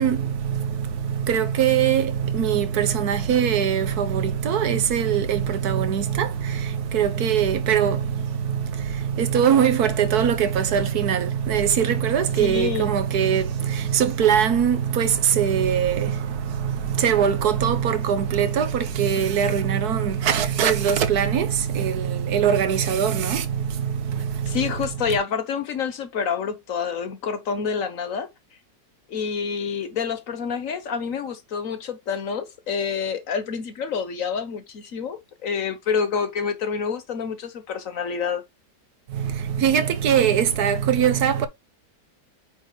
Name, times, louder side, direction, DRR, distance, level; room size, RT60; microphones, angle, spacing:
voice 1, 0.0-24.7 25.1-25.2 39.1-41.5, right 8 dB, 80° right, 1.5 m, -22 dB
voice 2, 12.4-12.9 24.5-28.3 29.1-38.4, left 6 dB, 60° left, 1.4 m, -27 dB
8.3 x 3.7 x 3.9 m
omnidirectional pair, 1.6 m